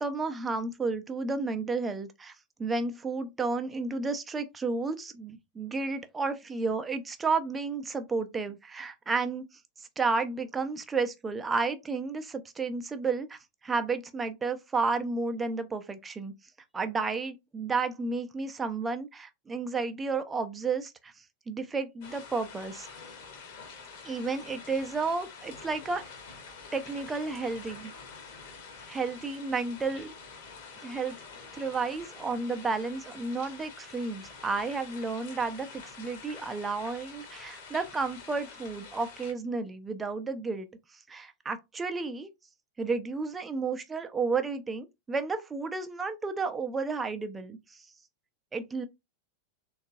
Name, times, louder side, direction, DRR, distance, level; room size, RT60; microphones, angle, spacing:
voice 1, 0.0-2.3 2.6-9.4 9.8-16.3 16.7-21.1 21.5-22.9 24.0-26.1 26.7-27.9 28.9-30.1 30.8-31.2 31.5-40.7 40.9-42.3 42.8-47.8 48.5-48.8, right 4 dB, 15° right, 0.5 m, -32 dB
sound 1, 22.0-39.3, left 5 dB, 50° left, 1.1 m, -47 dB
3.6 x 2.3 x 2.6 m
figure-of-eight pair, 90°, 0 cm